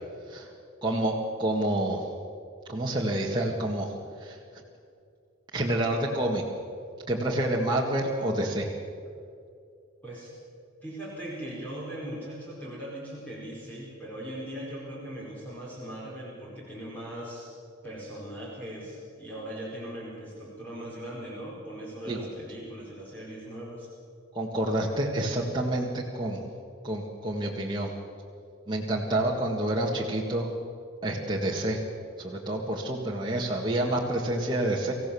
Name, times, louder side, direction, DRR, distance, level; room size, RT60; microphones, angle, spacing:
voice 1, 0.8-2.0 2.7-3.9 4.2-4.4 5.5-6.4 7.1-8.7 22.1-22.2 24.3-26.4 26.8-27.9 28.7-30.5 31.0-31.8 32.2-34.9, right 1 dB, 25° right, -3 dB, 1.8 m, -28 dB
voice 2, 10.8-17.5 17.8-23.9, right 1 dB, 10° left, -6 dB, 4.7 m, -39 dB
25.5 x 16.0 x 7.0 m, 2.4 s
head